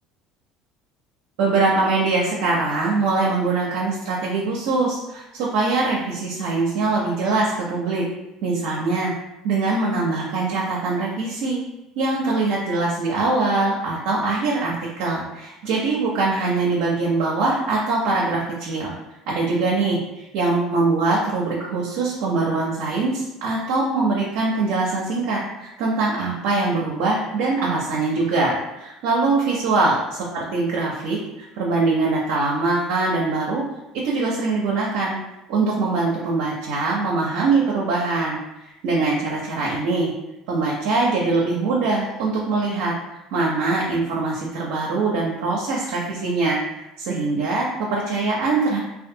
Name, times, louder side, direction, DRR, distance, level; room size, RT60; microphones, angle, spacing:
voice 1, 1.4-8.0 8.4-9.1 9.4-11.6 12.0-18.9 19.3-33.6 34.0-35.2 35.5-40.1 40.5-42.9 43.3-48.8, right 3 dB, 75° right, -4 dB, 0.5 m, -22 dB
2.5 x 2.3 x 2.6 m, 0.93 s
hypercardioid pair, 80°, 0 cm